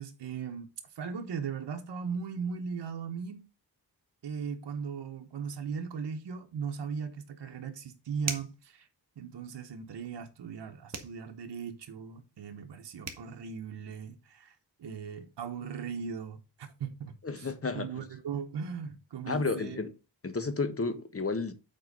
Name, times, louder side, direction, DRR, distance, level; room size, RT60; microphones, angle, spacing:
voice 1, 0.0-3.4 4.2-8.9 9.2-19.8, right 6 dB, 85° right, 1.2 m, -38 dB
sound 1, 8.2-8.6 10.9-11.2 12.7-12.8 13.0-13.3, right 4 dB, 40° right, 1.7 m, -37 dB
voice 2, 17.2-18.1 19.3-19.9 20.2-21.5, left 3 dB, 35° left, 1.4 m, -32 dB
7.8 x 4.5 x 5.3 m
cardioid pair, 80°, 41 cm